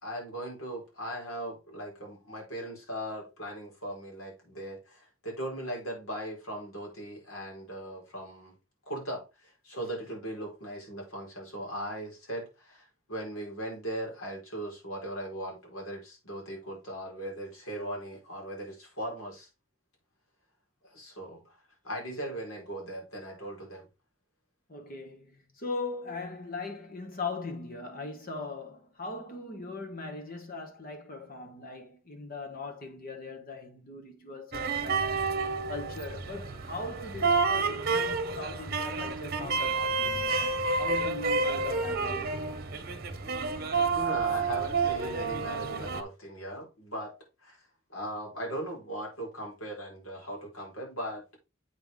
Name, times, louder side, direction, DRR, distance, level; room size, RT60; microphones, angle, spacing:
voice 1, 0.0-8.5 8.9-19.5 20.8-23.9 43.8-47.1 47.4-47.6 47.9-51.2, right 1 dB, 75° left, 4.4 m, -39 dB
voice 2, 24.7-35.4 35.7-42.4, left 3 dB, 45° left, 1.4 m, -40 dB
sound 1, 34.5-46.0, right 4 dB, 45° right, 1.0 m, -29 dB
8.0 x 5.7 x 3.6 m
head